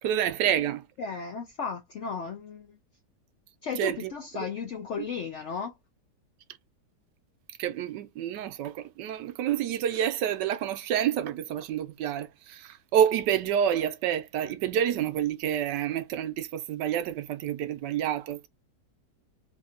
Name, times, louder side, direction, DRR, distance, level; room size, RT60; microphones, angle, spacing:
voice 1, 0.0-0.8 3.8-4.4 7.6-18.5, right 9 dB, 80° right, 1.2 m, -28 dB
voice 2, 1.0-2.8 3.6-5.7, left 5 dB, 70° left, 0.6 m, -35 dB
3.6 x 2.7 x 2.4 m
omnidirectional pair, 1.9 m